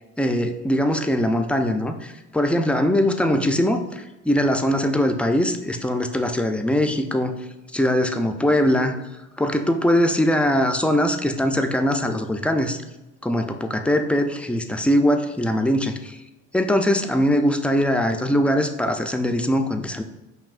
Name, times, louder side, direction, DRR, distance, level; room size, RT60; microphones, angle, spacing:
voice 1, 0.2-7.3 7.7-9.0 9.4-12.8 13.2-16.2 16.5-20.0, equal, 5° left, 5 dB, 0.3 m, -21 dB
5.8 x 2.6 x 2.4 m, 1.0 s
cardioid pair, 90°, 30 cm